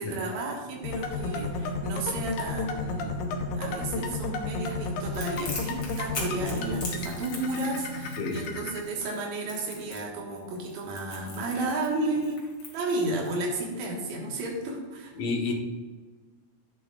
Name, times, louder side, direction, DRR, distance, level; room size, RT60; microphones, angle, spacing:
voice 1, 0.0-15.1, right 2 dB, 70° right, -2 dB, 2.8 m, -33 dB
sound 1, 0.8-8.8, left 2 dB, 85° left, 2.3 m, -32 dB
Crackle, 5.1-13.4, left 3 dB, 40° left, 2.2 m, -41 dB
voice 2, 8.2-8.5 15.2-15.5, left 4 dB, 60° left, 0 dB, 2.1 m, -30 dB
11.0 x 8.4 x 2.4 m, 1.4 s
omnidirectional pair, 3.4 m